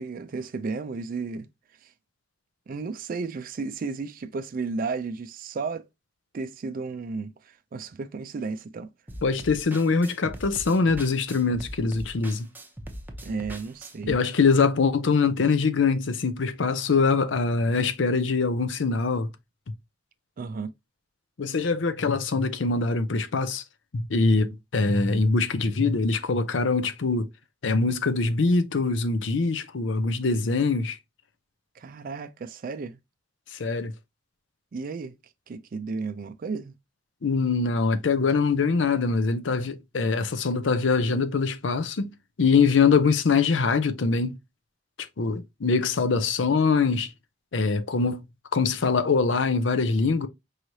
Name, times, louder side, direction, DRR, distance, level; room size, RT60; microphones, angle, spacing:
voice 1, 0.0-1.5 1.8-1.9 2.7-5.8 6.3-8.9 13.2-14.2 20.4-20.7 31.8-33.0 34.7-35.1 35.5-36.7, right 4 dB, 50° right, 0.4 m, -33 dB
sound 1, 9.1-14.1, equal, 10° right, 0.7 m, -40 dB
voice 2, 9.2-12.5 14.1-19.3 21.4-23.6 23.9-27.3 27.6-31.0 33.5-33.9 37.2-44.4 45.2-47.1 47.5-48.2 48.5-50.3, left 4 dB, 75° left, 0.6 m, -23 dB
4.7 x 3.1 x 2.7 m
head